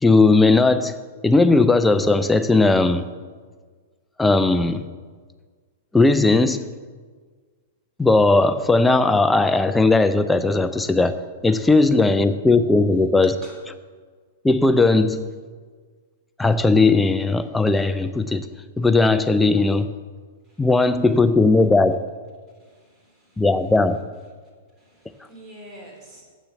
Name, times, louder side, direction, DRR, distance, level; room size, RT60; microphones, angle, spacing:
voice 1, 0.0-1.0 1.2-3.1 4.2-4.9 5.9-6.7 8.0-13.4 14.4-15.3 16.4-18.5 18.8-19.9 20.6-22.0 23.4-24.0, left 3 dB, 10° left, 10 dB, 0.5 m, -17 dB
voice 2, 22.5-23.5 24.7-26.2, right 1 dB, 30° right, -1 dB, 3.2 m, -47 dB
7.5 x 6.9 x 6.8 m, 1.5 s
hypercardioid pair, 110°, 0 cm